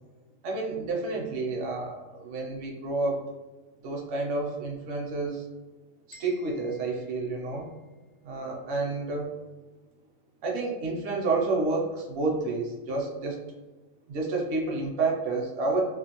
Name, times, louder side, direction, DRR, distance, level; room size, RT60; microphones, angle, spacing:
voice 1, 0.4-3.3 3.8-5.5 6.1-7.7 8.2-9.3 10.4-13.4 14.1-15.8, right 3 dB, 70° right, -2 dB, 0.8 m, -29 dB
sound 1, 6.1-8.1, left 1 dB, 55° left, 0.9 m, -56 dB
2.5 x 2.3 x 2.8 m, 1.2 s
omnidirectional pair, 1.2 m